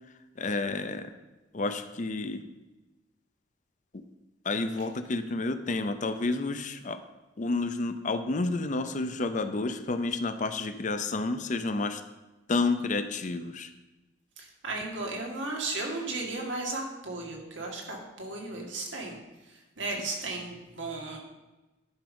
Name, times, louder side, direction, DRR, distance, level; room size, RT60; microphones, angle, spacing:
voice 1, 0.4-1.1 1.5-2.4 3.9-4.0 4.4-7.0 7.4-12.0 12.5-13.7, left 3 dB, 40° left, 10 dB, 0.6 m, -30 dB
voice 2, 14.4-19.2 19.4-21.2, right 2 dB, 80° right, 0 dB, 2.0 m, -35 dB
11.0 x 5.4 x 5.1 m, 1.1 s
head